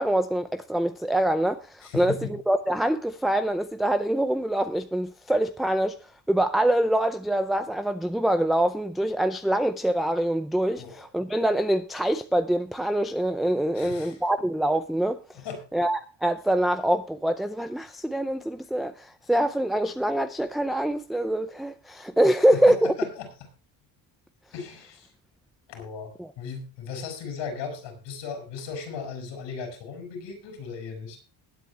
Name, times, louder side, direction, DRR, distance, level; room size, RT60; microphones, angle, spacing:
voice 1, 0.0-6.0 6.3-15.2 15.7-22.9 26.2-26.3, right 1 dB, ahead, 0.5 m, -25 dB
voice 2, 1.8-2.3 10.8-11.0 13.7-14.2 15.3-15.6 22.4-23.3 24.5-25.1 25.7-26.1 26.4-31.2, left 6 dB, 90° left, 6.5 m, -37 dB
20.0 x 8.6 x 3.4 m
cardioid pair, 150°, 42 cm